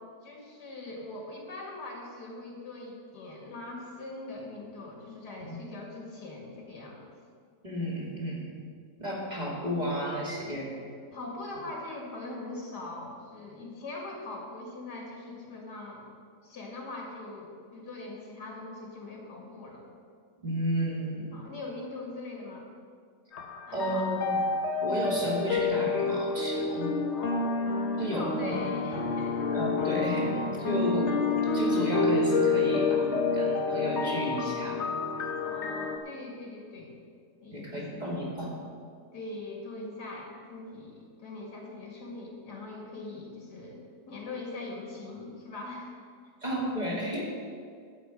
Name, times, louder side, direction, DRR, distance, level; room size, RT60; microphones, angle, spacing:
voice 1, 0.2-7.1 11.1-16.1 16.4-19.9 21.3-22.7 23.7-24.1 27.1-29.4 35.4-37.0 37.4-38.2 39.1-45.9, left 2 dB, 65° left, -1 dB, 2.8 m, -42 dB
voice 2, 7.6-8.5 9.0-10.8 20.4-21.4 23.7-24.4 24.8-26.9 28.0-28.5 29.5-34.8 37.5-38.5 46.4-47.2, equal, 25° right, -6 dB, 2.7 m, -32 dB
sound 1, 23.3-36.0, left 4 dB, 50° left, 1.0 m, -28 dB
12.5 x 5.2 x 9.0 m, 2.2 s
omnidirectional pair, 1.9 m